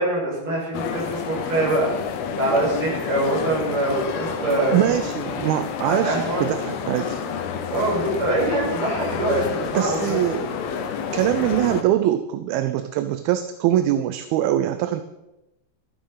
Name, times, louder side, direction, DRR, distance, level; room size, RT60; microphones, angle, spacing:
voice 1, 0.0-1.9 2.3-4.8 5.8-6.5 7.7-10.2, right 2 dB, 30° right, -5 dB, 6.7 m, -24 dB
sound 1, 0.7-11.8, left 7 dB, 75° left, 2.9 m, -29 dB
voice 2, 4.5-7.2 9.8-10.5 11.1-15.0, right 12 dB, 80° right, 10 dB, 2.4 m, -23 dB
13.0 x 11.5 x 5.6 m, 0.93 s
omnidirectional pair, 4.6 m